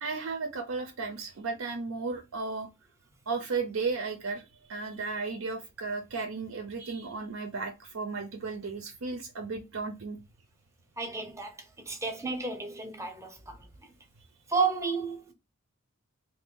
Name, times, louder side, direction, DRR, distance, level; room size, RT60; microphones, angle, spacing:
voice 1, 0.0-2.7 3.3-4.4 4.7-10.2, right 4 dB, 70° right, 0.5 m, -34 dB
voice 2, 11.0-11.5 11.9-13.6 14.5-15.3, right 4 dB, 15° right, 0.6 m, -31 dB
2.7 x 2.6 x 3.7 m
head